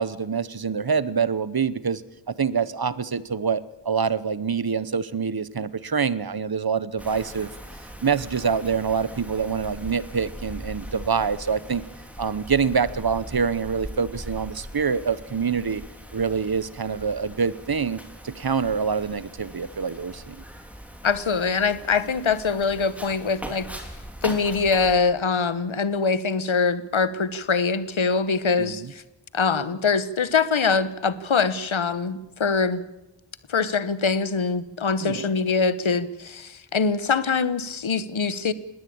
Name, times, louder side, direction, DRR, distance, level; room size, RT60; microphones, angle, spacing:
voice 1, 0.0-2.0 2.3-7.5 8.0-11.8 12.2-15.8 16.1-20.4 28.6-28.9 35.0-35.3, right 6 dB, 50° right, 17 dB, 1.0 m, -26 dB
Wind, 7.0-24.9, equal, 5° right, 3.3 m, -40 dB
voice 2, 21.0-23.7 24.2-29.0 29.3-32.8 33.5-38.5, left 5 dB, 90° left, 15 dB, 1.1 m, -23 dB
20.5 x 17.5 x 8.7 m, 0.98 s
wide cardioid pair, 65°, 46 cm